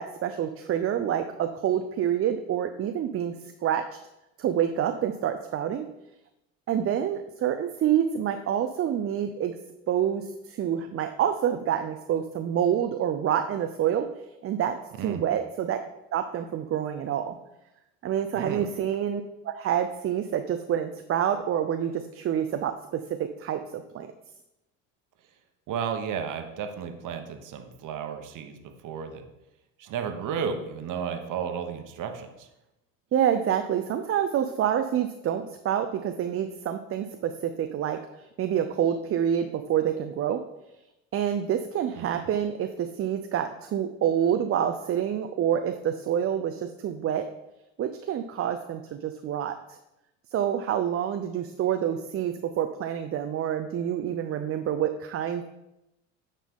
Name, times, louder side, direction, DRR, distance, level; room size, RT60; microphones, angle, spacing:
voice 1, 0.0-3.3 3.6-3.8 4.4-5.9 6.7-9.5 9.9-14.1 14.4-15.8 16.1-17.4 18.0-23.0 23.4-24.1 33.1-38.0 38.4-40.4 41.1-47.2 47.8-49.6 50.3-55.4, right 9 dB, 35° right, 8 dB, 0.5 m, -27 dB
voice 2, 18.3-18.7 25.7-28.6 28.8-29.2 29.8-32.5 42.0-42.3, right 7 dB, 55° right, 6 dB, 1.1 m, -33 dB
9.2 x 4.1 x 3.7 m, 0.91 s
hypercardioid pair, 70°, 38 cm